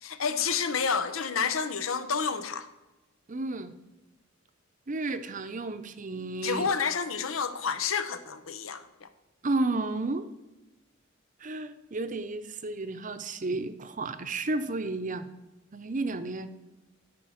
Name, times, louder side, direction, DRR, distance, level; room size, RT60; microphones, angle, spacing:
voice 1, 0.0-2.7 6.4-9.1, left 6 dB, 85° left, 0.8 m, -29 dB
voice 2, 3.3-3.7 4.9-6.7 9.4-10.3 11.4-15.3 15.7-16.5, right 2 dB, 40° right, 0.7 m, -32 dB
13.0 x 4.6 x 6.3 m
head